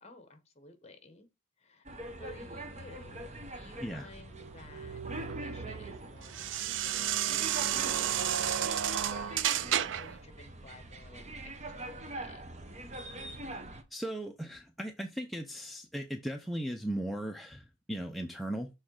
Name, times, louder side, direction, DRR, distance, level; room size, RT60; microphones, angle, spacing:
voice 1, 0.0-1.3 1.6-9.5 10.0-13.2, left 2 dB, 35° left, 1.2 m, -54 dB
sound 1, 1.9-13.8, right 1 dB, 35° right, 0.9 m, -44 dB
sound 2, 4.3-10.2, right 10 dB, 65° right, 0.4 m, -32 dB
voice 2, 13.9-18.7, right 1 dB, ahead, 0.5 m, -37 dB
6.3 x 3.8 x 4.8 m
head